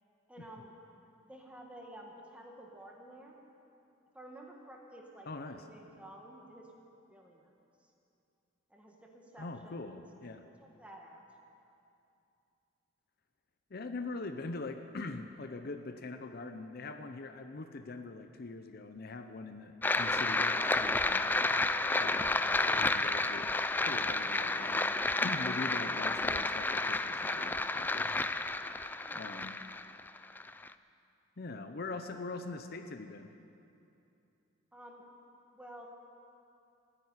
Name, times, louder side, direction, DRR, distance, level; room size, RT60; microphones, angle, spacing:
voice 1, 0.3-0.7 1.3-3.4 4.1-6.7 7.1-7.5 8.7-10.1 10.6-11.2 22.1-22.5 28.7-29.5 34.7-35.1 35.5-35.9, right 1 dB, 5° right, 0 dB, 1.7 m, -52 dB
voice 2, 5.3-5.6 9.4-10.4 13.7-21.3 21.7-22.2 22.7-23.6 23.8-28.1 29.1-29.5 31.4-33.3, left 3 dB, 50° left, 7 dB, 0.7 m, -42 dB
sound 1, 19.8-30.7, left 2 dB, 10° left, 0.3 m, -31 dB
14.0 x 10.0 x 9.6 m, 2.7 s
head